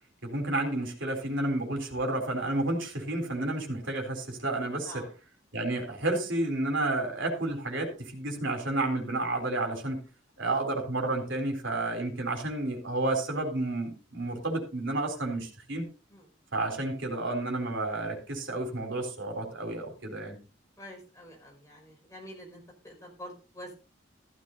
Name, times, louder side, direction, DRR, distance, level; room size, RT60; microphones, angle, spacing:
voice 1, 0.2-5.0 5.5-10.0 10.4-15.8 16.5-20.4, right 2 dB, 70° right, 3 dB, 3.7 m, -31 dB
voice 2, 20.8-23.7, equal, 15° left, -1 dB, 5.4 m, -47 dB
15.0 x 13.0 x 2.7 m, 0.34 s
head